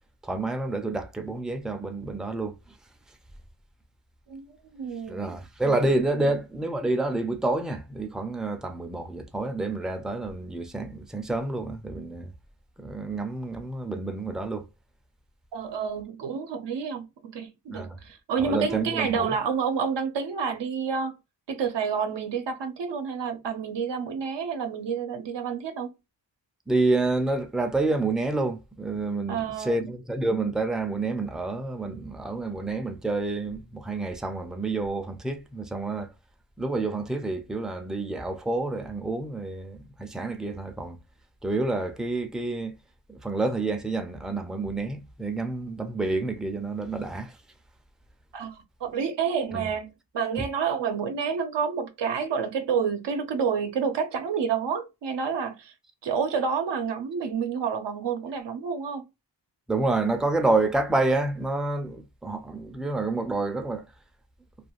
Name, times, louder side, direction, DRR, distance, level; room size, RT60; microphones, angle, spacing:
voice 1, 0.2-2.6 5.1-12.3 12.8-14.7 17.7-18.0 18.4-19.3 26.7-36.1 36.6-41.0 41.4-42.7 43.1-47.3 49.5-49.6 59.7-63.9, right 2 dB, ahead, 0.3 m, -28 dB
voice 2, 4.7-5.4 6.1-6.3 15.5-21.2 21.5-25.9 29.3-29.8 48.3-55.7 56.0-59.0, right 6 dB, 85° right, 0.6 m, -29 dB
2.5 x 2.3 x 2.8 m
wide cardioid pair, 110°, 42 cm